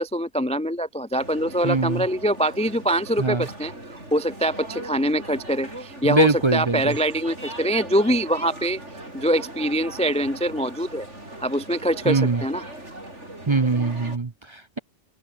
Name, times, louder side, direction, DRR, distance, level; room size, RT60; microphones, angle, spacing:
voice 1, 0.0-8.8 9.1-11.1 11.4-12.6, right 1 dB, 10° left, 0.5 m, -24 dB
sound 1, 1.2-14.2, right 1 dB, 75° right, 8.2 m, -39 dB
voice 2, 1.6-2.0 3.2-3.5 6.0-6.9 12.1-12.4 13.5-14.8, right 3 dB, 30° right, 0.7 m, -22 dB
open air
omnidirectional pair, 1.2 m